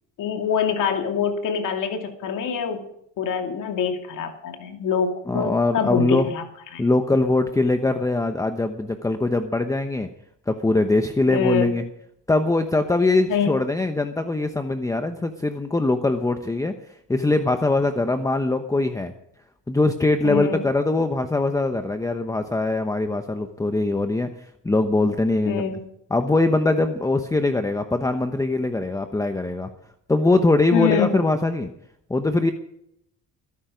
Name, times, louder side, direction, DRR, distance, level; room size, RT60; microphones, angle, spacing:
voice 1, 0.2-2.8 3.2-6.4 6.7-6.8 11.3-11.7 13.3-13.5 20.2-20.6 25.5-25.8 30.7-31.2, left 7 dB, 65° left, 4 dB, 2.5 m, -25 dB
voice 2, 5.3-6.3 6.8-10.1 10.5-11.9 12.3-16.7 17.1-19.1 19.7-25.6 26.1-29.7 30.1-31.7 32.1-32.5, left 2 dB, 10° left, 7 dB, 0.9 m, -22 dB
21.5 x 10.5 x 5.1 m, 0.73 s
cardioid pair, 125°, 33 cm